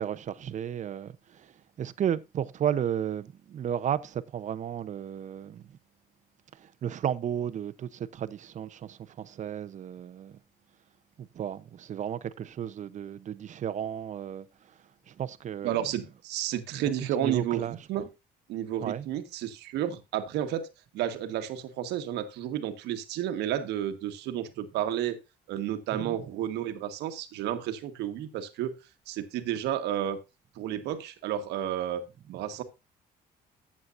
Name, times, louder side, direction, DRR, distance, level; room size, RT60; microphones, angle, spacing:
voice 1, 0.0-5.7 6.5-10.4 11.2-14.5 15.1-15.8 17.2-18.1 18.8-19.1 25.9-26.2, right 9 dB, 45° right, 0.7 m, -33 dB
voice 2, 15.6-18.0 18.5-20.7 20.9-25.2 25.5-28.8 29.1-30.2 30.6-32.0 32.3-32.6, right 11 dB, 80° right, 1.4 m, -31 dB
14.0 x 7.5 x 2.5 m
cardioid pair, 110°, 17 cm